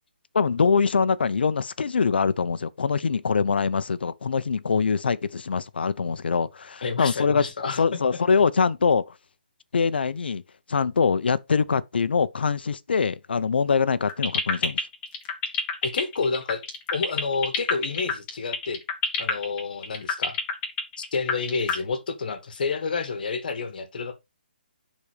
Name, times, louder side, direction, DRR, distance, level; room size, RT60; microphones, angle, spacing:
voice 1, 0.3-7.4 7.8-9.1 9.7-10.4 10.7-14.8, left 5 dB, 75° left, 0.8 m, -23 dB
voice 2, 6.8-8.2 15.8-16.6 16.9-18.8 19.1-20.4 21.1-24.2, left 4 dB, 55° left, 1.7 m, -29 dB
sound 1, 14.1-21.7, left 6 dB, 20° left, 1.8 m, -26 dB
10.5 x 4.2 x 4.9 m
hypercardioid pair, 165°, 6 cm